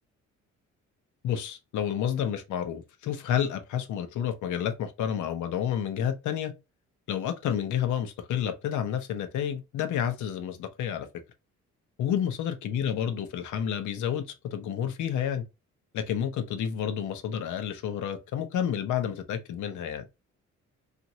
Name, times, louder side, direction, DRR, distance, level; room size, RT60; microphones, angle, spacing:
voice 1, 1.2-6.5 7.1-11.1 12.0-14.2 14.5-15.4 15.9-20.1, left 9 dB, 75° left, 0.7 m, -30 dB
2.9 x 2.5 x 2.7 m
cardioid pair, 90°, 30 cm